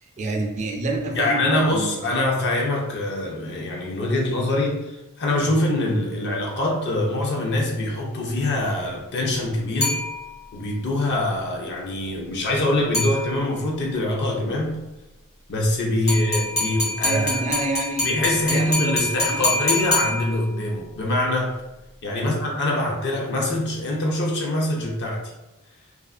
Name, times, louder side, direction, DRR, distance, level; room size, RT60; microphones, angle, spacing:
voice 1, 0.0-2.2 16.1-16.2 16.6-16.7 17.0-19.5 22.1-22.5, right 2 dB, 35° right, 2 dB, 0.3 m, -29 dB
voice 2, 1.1-4.9 5.2-10.0 10.5-14.8 15.5-17.4 18.0-21.6 22.0-25.3, left 1 dB, 55° left, -1 dB, 0.6 m, -24 dB
sound 1, 9.8-10.6 12.9-13.7 16.1-20.7, left 2 dB, 70° left, 1.2 m, -26 dB
2.4 x 2.4 x 2.4 m, 0.99 s
head